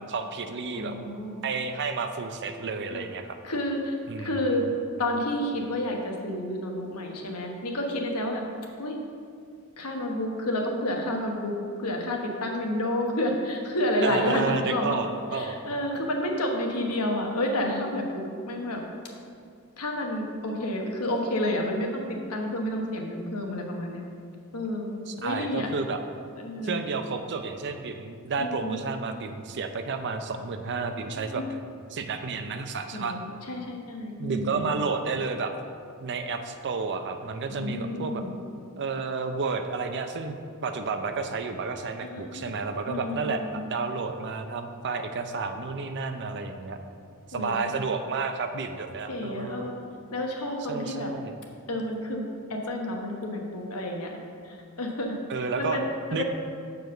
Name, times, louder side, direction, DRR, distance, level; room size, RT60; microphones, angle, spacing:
voice 1, 0.1-1.0 1.4-3.4 4.1-4.4 14.0-15.6 25.1-26.0 26.6-31.6 31.9-33.2 34.2-35.5 36.0-38.2 38.8-40.4 40.6-46.8 47.3-49.7 50.7-51.3 55.3-55.8 56.1-56.2, right 4 dB, 50° right, 7 dB, 0.5 m, -31 dB
voice 2, 0.7-1.3 2.9-3.1 3.4-4.6 5.0-8.4 8.8-8.9 9.8-11.5 11.8-15.0 15.3-18.8 19.8-24.0 24.5-24.9 25.2-25.7 26.3-26.8 28.4-28.8 31.0-31.5 32.9-34.7 37.5-38.3 42.0-42.5 42.9-43.6 47.3-47.9 49.1-49.8 50.1-51.1 51.7-54.2 54.4-56.2, left 1 dB, 80° left, 1 dB, 1.1 m, -30 dB
7.0 x 4.7 x 6.5 m, 2.3 s
head